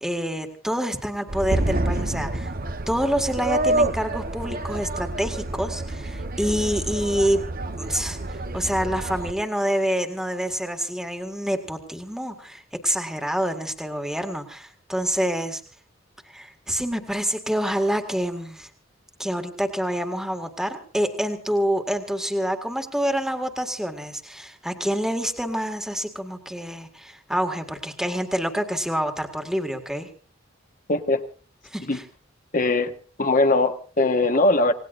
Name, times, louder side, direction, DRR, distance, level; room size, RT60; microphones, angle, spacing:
voice 1, 0.0-2.5 2.9-7.4 7.8-15.6 16.3-18.7 19.2-30.1 31.6-32.1, equal, 5° right, 5 dB, 1.8 m, -27 dB
sound 1, 1.3-9.3, right 2 dB, 45° right, 1.0 m, -28 dB
voice 2, 30.9-31.2 31.9-32.0 32.5-32.9 33.2-34.7, left 2 dB, 40° left, 7 dB, 1.3 m, -20 dB
28.0 x 18.5 x 2.5 m, 0.38 s
head